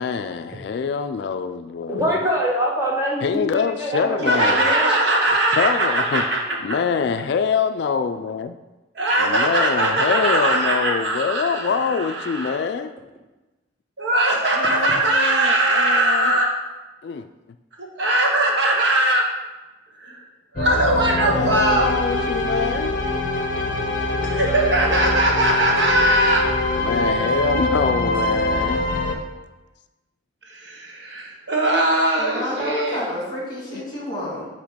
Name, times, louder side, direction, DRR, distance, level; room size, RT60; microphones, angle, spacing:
voice 1, 0.0-2.1 3.2-4.7 5.5-6.2 6.6-8.6 9.2-12.9 14.6-16.4 17.0-17.3 21.3-22.9 26.8-28.9, left 6 dB, 60° left, 9 dB, 0.3 m, -25 dB
voice 2, 1.9-4.9, equal, 15° right, -3 dB, 1.2 m, -24 dB
voice 3, 4.2-6.4 8.9-12.6 14.0-16.5 18.0-19.2 20.0-20.2 20.5-21.9 24.2-26.5 30.5-33.0, right 1 dB, 70° right, -1 dB, 1.3 m, -20 dB
sound 1, 20.6-29.2, left 2 dB, 45° left, 0.7 m, -24 dB
voice 4, 32.2-34.5, left 1 dB, 20° left, -4 dB, 2.2 m, -29 dB
8.0 x 3.0 x 5.0 m, 1.1 s
head